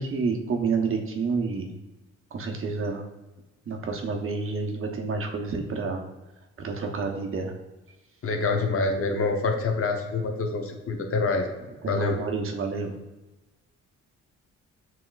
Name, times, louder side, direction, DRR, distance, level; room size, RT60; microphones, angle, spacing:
voice 1, 0.0-1.8 2.3-3.0 3.7-6.0 6.6-7.5 11.8-12.9, right 4 dB, 45° right, 3 dB, 0.8 m, -29 dB
voice 2, 8.2-11.5 11.9-12.2, left 3 dB, 50° left, 3 dB, 0.8 m, -26 dB
7.2 x 2.9 x 2.4 m, 1.1 s
cardioid pair, 90°, 30 cm